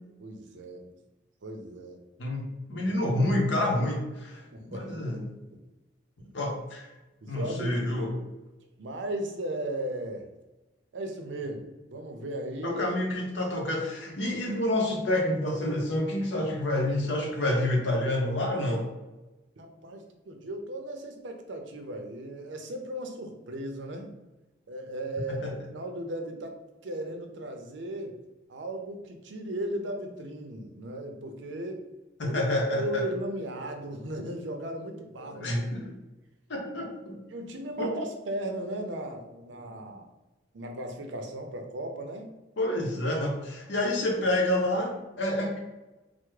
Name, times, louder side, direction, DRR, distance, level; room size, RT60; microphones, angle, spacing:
voice 1, 0.2-0.9 1.4-2.0 2.8-3.2 4.3-5.0 6.2-6.3 7.2-8.1 8.8-10.3 10.9-13.0 19.6-24.1 24.7-26.6 26.8-28.1 28.5-31.8 32.2-32.4 32.8-35.9 37.3-40.1 40.5-42.3, right 1 dB, 80° right, 5 dB, 0.5 m, -36 dB
voice 2, 2.2-4.4 4.7-5.3 6.3-6.9 7.3-8.2 12.6-18.9 25.4-25.5 32.2-33.0 35.3-35.9 36.5-37.1 37.8-37.9 42.6-45.6, left 1 dB, 75° left, 1 dB, 0.7 m, -28 dB
3.3 x 2.0 x 3.2 m, 1.1 s
head